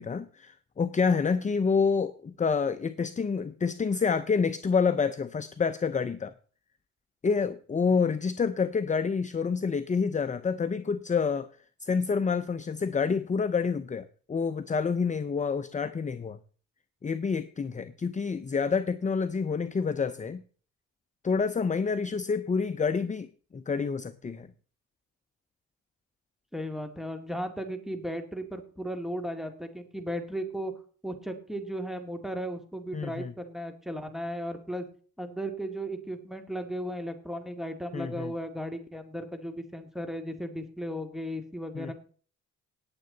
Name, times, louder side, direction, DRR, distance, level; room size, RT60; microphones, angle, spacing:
voice 1, 0.0-6.3 7.2-11.5 11.8-16.4 17.0-20.4 21.2-24.5 32.9-33.3 37.9-38.3 41.7-41.9, left 5 dB, 25° left, 11 dB, 0.7 m, -28 dB
voice 2, 26.5-30.7 31.0-34.8 35.2-41.9, equal, ahead, 7 dB, 2.4 m, -35 dB
18.5 x 7.6 x 4.0 m, 0.43 s
cardioid pair, 90°, 30 cm